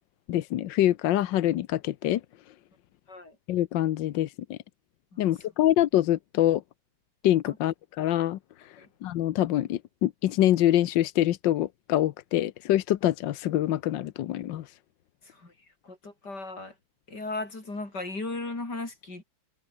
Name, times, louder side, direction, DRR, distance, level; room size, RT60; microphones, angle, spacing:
voice 1, 0.3-2.2 3.5-4.6 5.2-6.6 7.2-8.4 8.6-8.7 9.0-14.6, left 13 dB, 65° left, 1.3 m, -25 dB
voice 2, 15.2-15.5 15.8-16.7 17.1-19.2, left 2 dB, 50° left, 6.6 m, -36 dB
omnidirectional pair, 2.4 m